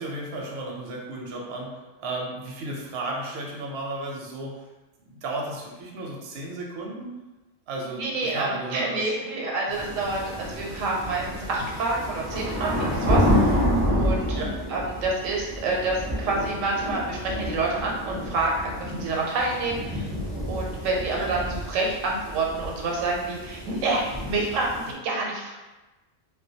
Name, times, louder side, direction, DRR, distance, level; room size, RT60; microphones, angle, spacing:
voice 1, 0.0-4.7 5.0-7.2 7.7-9.1 9.8-9.9 14.3-14.6 21.1-21.4, right 2 dB, 65° right, -2 dB, 0.7 m, -34 dB
voice 2, 8.0-14.4 14.7-20.1 20.5-25.5, right 3 dB, 85° right, -2 dB, 1.0 m, -28 dB
sound 1, 9.7-24.9, equal, 10° right, 0.4 m, -29 dB
2.2 x 2.2 x 2.7 m, 1.1 s
omnidirectional pair, 1.3 m